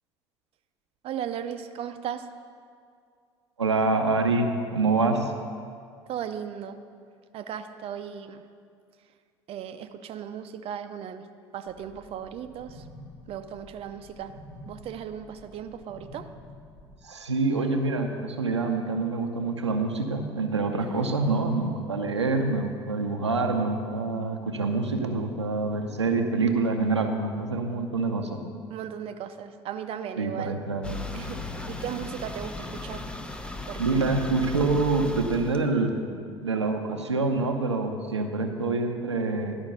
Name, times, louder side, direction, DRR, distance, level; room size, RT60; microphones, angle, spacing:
voice 1, 1.0-2.3 6.1-6.8 7.3-8.4 9.5-11.3 11.5-12.8 13.3-14.3 14.7-16.3 20.8-21.1 28.7-30.6 31.1-33.1 33.7-34.2, right 9 dB, 45° right, 8 dB, 0.5 m, -36 dB
voice 2, 3.6-5.3 17.0-28.4 30.2-31.1 33.8-36.1 36.4-39.6, right 3 dB, 90° right, 4 dB, 0.6 m, -26 dB
sound 1, 11.6-17.0, left 1 dB, 75° left, 1.8 m, -49 dB
sound 2, 30.8-35.7, left 2 dB, 5° left, 0.7 m, -36 dB
11.5 x 5.1 x 6.5 m, 2.2 s
figure-of-eight pair, 60°, 14 cm